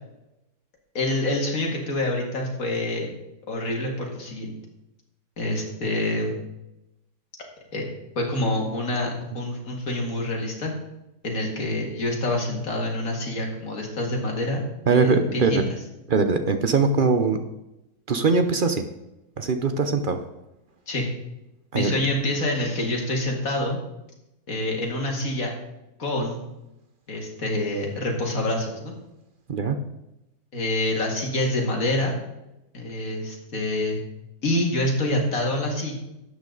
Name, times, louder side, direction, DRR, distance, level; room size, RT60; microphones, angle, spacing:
voice 1, 0.9-3.1 3.5-4.6 5.4-6.4 7.7-7.9 8.2-10.7 11.2-15.6 20.9-21.1 21.7-23.8 24.5-25.5 26.0-26.4 27.1-28.9 30.5-32.2 32.7-34.0 34.4-35.9, left 1 dB, 65° left, 0 dB, 2.6 m, -26 dB
voice 2, 14.9-15.6 16.1-17.4 18.1-18.9 19.4-20.2 21.7-21.9 29.5-29.8, right 4 dB, 50° right, 8 dB, 0.7 m, -21 dB
12.0 x 8.2 x 3.9 m, 0.93 s
omnidirectional pair, 1.6 m